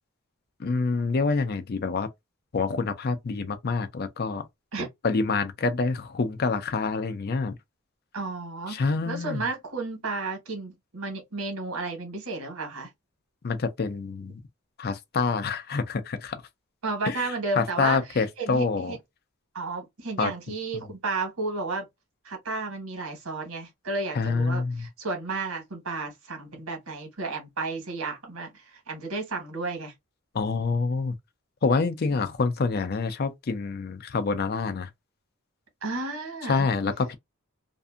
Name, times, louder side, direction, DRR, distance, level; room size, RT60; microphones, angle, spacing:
voice 1, 0.6-2.1 2.5-4.5 5.0-7.6 8.7-9.4 13.4-14.4 14.8-16.4 17.1-17.3 17.6-19.0 20.2-20.3 20.7-20.9 24.1-24.9 30.3-31.2 31.6-34.9 36.4-37.1, left 4 dB, 45° left, 0.5 m, -27 dB
voice 2, 8.1-12.9 16.8-19.0 19.5-21.9 22.2-29.9 32.1-32.3 35.8-36.7, right 3 dB, 85° right, 1.3 m, -33 dB
2.6 x 2.6 x 2.3 m
head